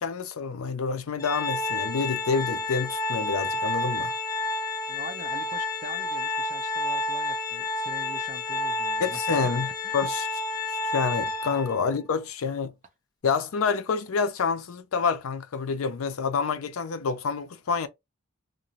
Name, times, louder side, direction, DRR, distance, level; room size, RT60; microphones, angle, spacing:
voice 1, 0.0-4.1 9.0-9.7 9.9-10.3 10.9-12.7 13.2-17.9, left 5 dB, 80° left, 0.5 m, -28 dB
Organ, 1.2-11.9, left 2 dB, 20° left, 0.8 m, -30 dB
voice 2, 4.9-9.5 9.8-10.1 11.4-11.5, right 2 dB, 35° right, 0.5 m, -43 dB
2.5 x 2.1 x 2.8 m
head